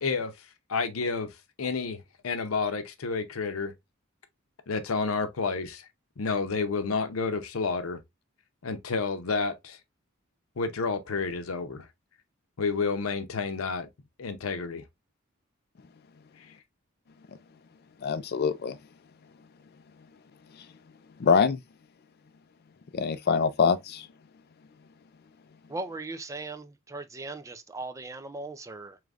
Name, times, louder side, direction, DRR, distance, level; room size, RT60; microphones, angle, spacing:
voice 1, 0.0-3.7 4.7-5.9 6.2-8.0 8.6-9.8 10.6-11.9 12.6-13.9 14.2-14.8 16.4-16.5, left 4 dB, 90° left, 0.7 m, -30 dB
voice 2, 18.0-18.8 21.2-21.6 22.9-24.1, left 5 dB, 50° left, 0.4 m, -24 dB
voice 3, 25.7-29.0, right 2 dB, 15° right, 0.4 m, -38 dB
4.9 x 3.1 x 2.4 m
head